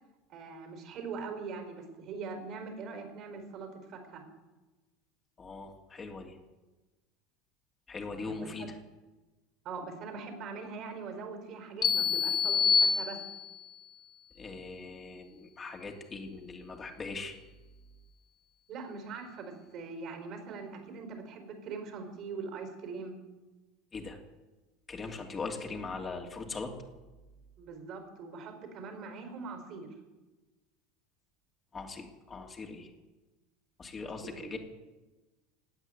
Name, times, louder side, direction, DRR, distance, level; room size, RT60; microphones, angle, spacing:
voice 1, 0.3-4.2 8.1-8.7 9.6-13.2 18.7-23.2 27.6-29.9 34.0-34.5, right 4 dB, 50° right, 5 dB, 4.6 m, -42 dB
voice 2, 5.4-6.4 7.9-8.8 14.3-17.4 23.9-24.2 24.9-26.7 31.7-32.9 33.8-34.6, left 4 dB, 25° left, 2 dB, 2.7 m, -40 dB
sound 1, 11.8-13.7, left 6 dB, 45° left, 2.6 m, -27 dB
17.0 x 9.0 x 9.4 m, 1.2 s
hypercardioid pair, 75°, 0 cm